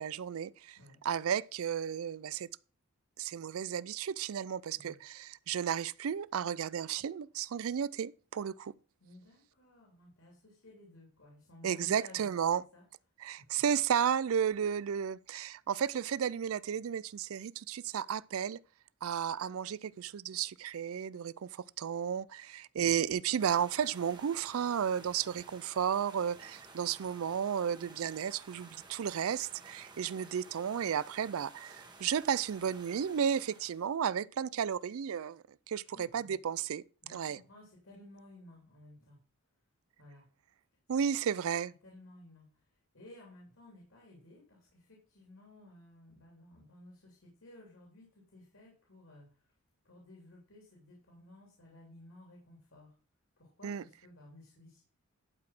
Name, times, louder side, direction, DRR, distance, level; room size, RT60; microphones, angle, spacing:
voice 1, 0.0-0.8 1.0-2.5 3.2-8.7 11.6-12.6 13.2-18.6 19.0-36.8 37.1-37.4 40.9-41.7 53.6-53.8, right 8 dB, 70° right, 0.4 m, -33 dB
voice 2, 9.0-12.4 12.7-12.8 13.4-13.6 35.8-36.4 37.0-39.2 40.0-40.3 41.8-42.6 42.9-49.3 49.8-52.9 53.4-54.8, left 1 dB, 65° left, 3.3 m, -56 dB
sound 1, 23.4-33.9, right 3 dB, 20° right, 1.4 m, -54 dB
11.5 x 4.9 x 6.0 m
head